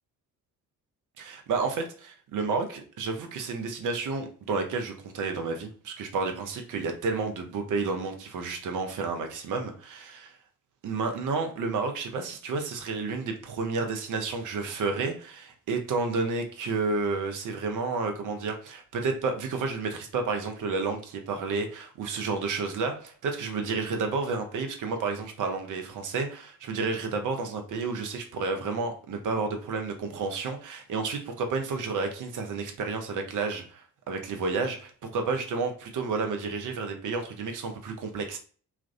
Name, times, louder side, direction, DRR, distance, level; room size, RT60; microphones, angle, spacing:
voice 1, 1.2-10.3 10.8-38.4, right 4 dB, 45° right, 0.6 m, -31 dB
2.3 x 2.1 x 2.5 m
figure-of-eight pair, 45°, 45 cm